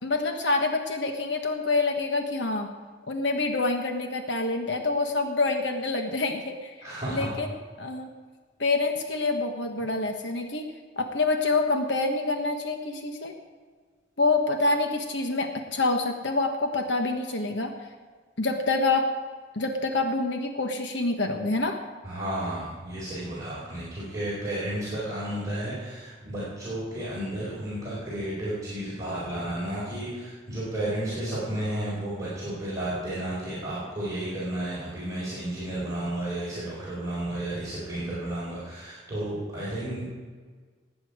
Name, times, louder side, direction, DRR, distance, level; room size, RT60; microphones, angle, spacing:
voice 1, 0.0-2.7 3.1-6.7 7.1-7.5 7.8-8.1 8.6-10.7 11.0-13.3 14.2-17.7 18.4-19.1 19.5-21.8, left 3 dB, 70° left, 4 dB, 1.3 m, -26 dB
voice 2, 6.8-7.3 22.0-40.0, right 1 dB, 15° right, -9 dB, 4.4 m, -32 dB
19.0 x 8.8 x 4.9 m, 1.5 s
head